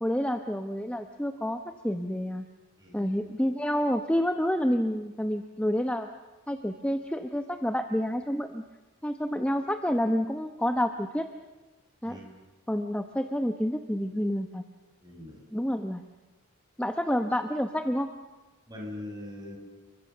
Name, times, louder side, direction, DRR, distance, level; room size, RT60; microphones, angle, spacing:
voice 1, 0.0-2.5 2.9-6.1 6.5-8.6 9.0-11.3 12.0-12.2 12.7-14.6 15.5-16.0 16.8-18.1, equal, 5° left, 6 dB, 0.9 m, -29 dB
voice 2, 2.8-3.1 12.0-12.2 15.0-15.4 18.7-19.6, left 1 dB, 20° right, 1 dB, 6.4 m, -41 dB
30.0 x 23.5 x 6.9 m, 1.1 s
head